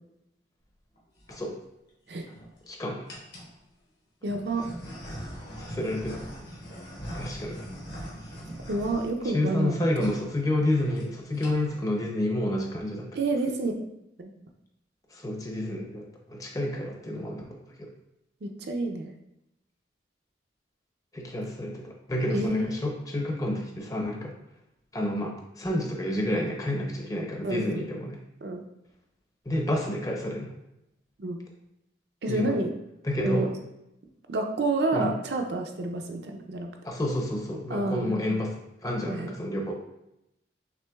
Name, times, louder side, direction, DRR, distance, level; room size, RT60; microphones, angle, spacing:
sound 1, 1.0-1.4 2.1-2.6 3.1-3.5 4.3-9.7 10.0-10.2 10.5-10.6 10.8-11.0 11.3-11.8, equal, 65° left, 1.3 m, -41 dB
voice 1, 2.7-3.0 5.6-6.2 7.1-7.6 9.3-13.2 15.1-17.9 21.1-24.3 24.9-28.2 29.5-30.5 32.3-32.6 33.0-33.5 34.9-35.1 36.8-38.5 38.8-39.7, left 1 dB, 20° left, 1 dB, 0.6 m, -29 dB
voice 2, 4.2-4.6 8.7-10.1 13.1-13.9 14.2-14.3 18.4-19.1 22.3-22.7 27.4-27.9 28.4-28.6 31.2-31.4 32.2-32.7 33.2-33.5 34.3-36.7 37.7-38.4 39.1-39.3, right 2 dB, 65° right, 4 dB, 0.5 m, -29 dB
5.9 x 3.3 x 2.3 m, 0.86 s
head